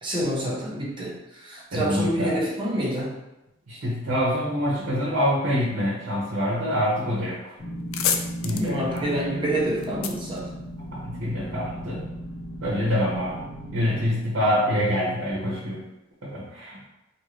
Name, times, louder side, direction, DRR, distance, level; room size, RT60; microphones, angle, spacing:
voice 1, 0.0-3.2 8.5-10.5, right 1 dB, 25° right, -4 dB, 0.7 m, -27 dB
voice 2, 1.7-2.4 3.7-7.5 8.4-9.1 10.9-12.0 12.6-13.4 13.7-15.8 16.2-16.8, equal, 80° right, -6 dB, 0.8 m, -26 dB
sound 1, 7.2-7.3 7.6-11.2, left 8 dB, 75° left, 0.3 m, -31 dB
sound 2, 7.6-14.1, equal, 60° left, 0.8 m, -36 dB
2.7 x 2.6 x 3.1 m, 0.93 s
head